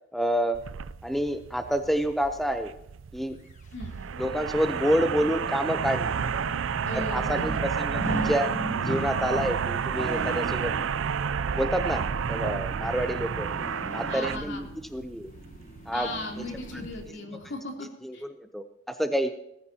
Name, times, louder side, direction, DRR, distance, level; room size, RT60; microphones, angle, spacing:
voice 1, 0.1-0.6 1.0-2.7 3.1-3.4 4.2-6.2 6.9-10.7 11.5-13.5 13.9-15.3 15.9-16.1 16.4-16.5 18.0-19.3, equal, ahead, 8 dB, 0.6 m, -28 dB
sound 1, 0.5-17.1, right 7 dB, 70° right, 0.4 m, -31 dB
sound 2, 3.5-17.4 17.8-17.9, equal, 40° left, 1.3 m, -39 dB
voice 2, 6.8-7.6 14.1-14.6 15.9-17.9 18.1-18.2, left 2 dB, 60° left, 1 dB, 3.2 m, -37 dB
19.5 x 14.5 x 2.9 m, 0.83 s
head